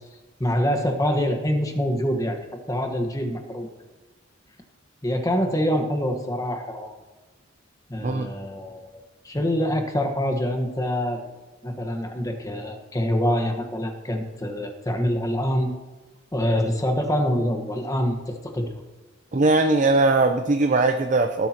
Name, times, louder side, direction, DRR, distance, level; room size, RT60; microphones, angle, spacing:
voice 1, 0.4-2.4 2.7-3.7 5.0-6.9 7.9-8.9 9.2-11.2 11.6-15.7 16.3-18.7, equal, 20° left, 4 dB, 1.4 m, -25 dB
voice 2, 19.3-21.5, right 3 dB, 40° right, 5 dB, 0.7 m, -20 dB
19.0 x 12.0 x 3.0 m, 1.2 s
head